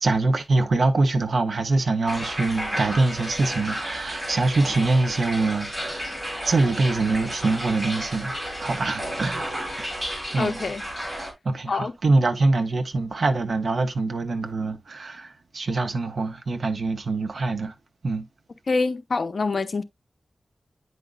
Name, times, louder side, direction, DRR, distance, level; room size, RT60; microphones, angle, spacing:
voice 1, 0.0-6.1 6.4-9.9 10.3-10.6 11.4-17.7 18.0-18.3, right 3 dB, 60° right, 1.0 m, -24 dB
sound 1, 2.1-11.3, equal, 15° right, 3.1 m, -32 dB
voice 2, 10.4-10.8 11.7-11.9 18.7-19.8, left 3 dB, 55° left, 0.8 m, -25 dB
9.3 x 5.3 x 2.4 m
wide cardioid pair, 110°, 0 cm